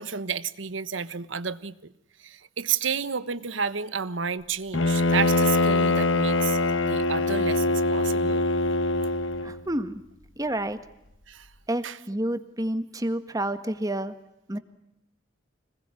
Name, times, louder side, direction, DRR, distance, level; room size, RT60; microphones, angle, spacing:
voice 1, 0.0-1.9 2.2-8.4 11.3-11.5 11.8-12.0, right 6 dB, 90° right, 14 dB, 1.3 m, -31 dB
Bowed string instrument, 4.7-9.6, left 2 dB, 85° left, 1.4 m, -23 dB
voice 2, 9.4-10.0 10.4-10.8 11.7-14.1 14.5-14.6, right 1 dB, 20° right, 10 dB, 1.6 m, -29 dB
26.0 x 20.5 x 9.8 m, 0.83 s
head